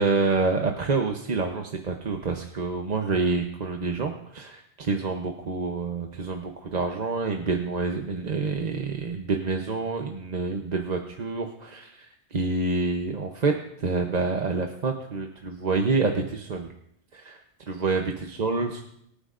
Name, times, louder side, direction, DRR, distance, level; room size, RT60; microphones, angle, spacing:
voice 1, 0.0-12.1 12.3-13.5 13.8-16.7 17.1-17.4 17.7-18.1 18.4-18.8, right 4 dB, 40° right, 3 dB, 0.9 m, -27 dB
23.5 x 10.0 x 2.5 m, 0.74 s
omnidirectional pair, 1.2 m